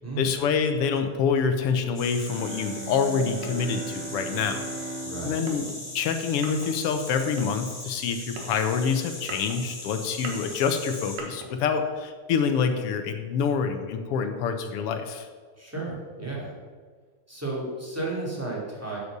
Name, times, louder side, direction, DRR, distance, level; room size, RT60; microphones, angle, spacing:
voice 1, 0.2-4.6 5.2-15.3, left 6 dB, 70° left, 7 dB, 1.5 m, -26 dB
sound 1, 1.9-11.2, left 2 dB, 35° left, 3.9 m, -39 dB
Bowed string instrument, 2.2-7.1, right 4 dB, 85° right, 1.2 m, -39 dB
sound 2, 2.3-12.0, right 3 dB, 65° right, 2.5 m, -44 dB
voice 2, 5.0-5.4 15.6-16.6 17.3-19.0, right 2 dB, 5° right, -5 dB, 2.6 m, -33 dB
8.1 x 8.0 x 6.7 m, 1.5 s
omnidirectional pair, 3.4 m